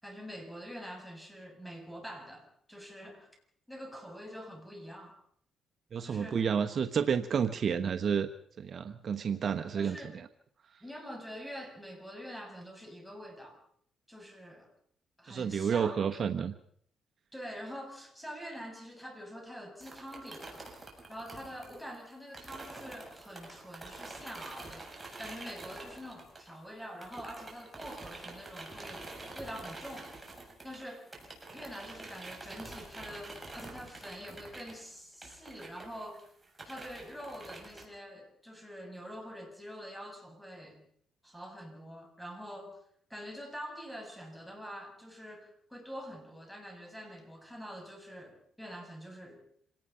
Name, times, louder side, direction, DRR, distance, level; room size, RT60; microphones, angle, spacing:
voice 1, 0.0-3.3 3.7-5.2 6.0-6.4 9.8-10.1 10.8-13.6 14.1-14.7 15.2-15.9 17.3-20.7 21.1-24.9 25.2-30.1 30.6-31.1 31.5-36.3 36.6-40.9 41.2-42.8 43.1-49.4, equal, ahead, 3 dB, 7.4 m, -45 dB
voice 2, 5.9-8.3 8.6-10.3 15.3-16.5, right 7 dB, 50° right, 7 dB, 1.2 m, -30 dB
sound 1, 19.8-26.7 27.0-37.9, right 2 dB, 15° right, 7.2 m, -47 dB
26.5 x 18.5 x 5.7 m, 0.64 s
cardioid pair, 90°, 0 cm